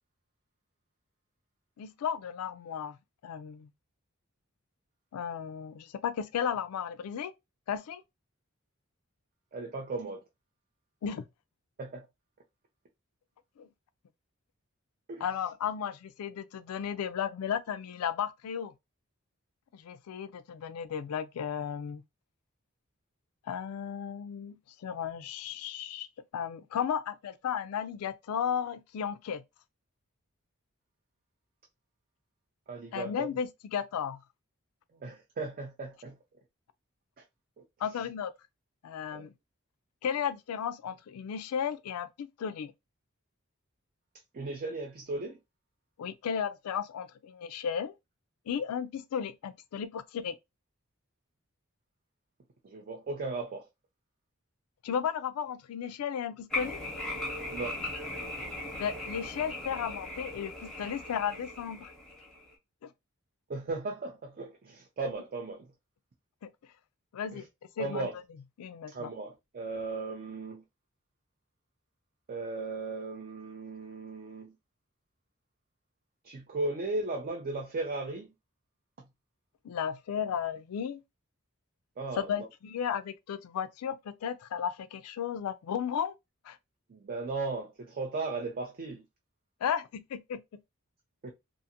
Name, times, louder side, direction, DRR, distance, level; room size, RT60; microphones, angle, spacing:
voice 1, 1.8-3.0 3.2-3.7 5.1-7.3 7.7-8.0 11.0-11.2 13.6-13.7 15.2-18.7 19.7-22.0 23.5-26.1 26.3-29.4 32.9-34.2 37.8-38.3 38.8-39.3 40.0-42.7 46.0-47.9 48.5-50.4 54.8-56.8 58.8-61.9 62.8-62.9 66.4-66.5 67.1-67.5 67.8-68.1 68.6-69.1 79.6-81.0 82.1-86.1 86.4-86.6 89.6-90.4, left 8 dB, 85° left, 0.3 m, -34 dB
voice 2, 9.5-10.2 11.8-12.1 15.1-15.2 32.7-33.3 35.0-36.1 37.6-37.7 39.1-39.3 44.3-45.4 52.6-53.6 57.5-57.8 63.5-65.6 67.3-67.4 67.8-68.1 68.9-70.6 72.3-74.5 76.2-78.3 82.0-82.3 86.9-89.0 91.2-91.3, right 3 dB, 45° right, 0.4 m, -36 dB
sound 1, 56.5-62.5, left 2 dB, 5° left, 0.8 m, -38 dB
2.5 x 2.5 x 2.7 m
head